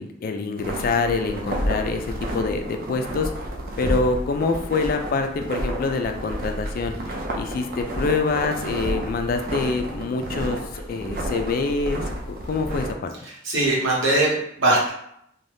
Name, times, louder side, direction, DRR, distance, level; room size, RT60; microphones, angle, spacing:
voice 1, 0.0-3.3 3.8-13.1, left 4 dB, 50° left, 6 dB, 0.3 m, -26 dB
sound 1, 0.6-12.9, right 1 dB, 50° right, 0.5 m, -30 dB
voice 2, 13.2-14.9, right 2 dB, 75° right, -4 dB, 1.0 m, -21 dB
2.6 x 2.2 x 3.3 m, 0.74 s
head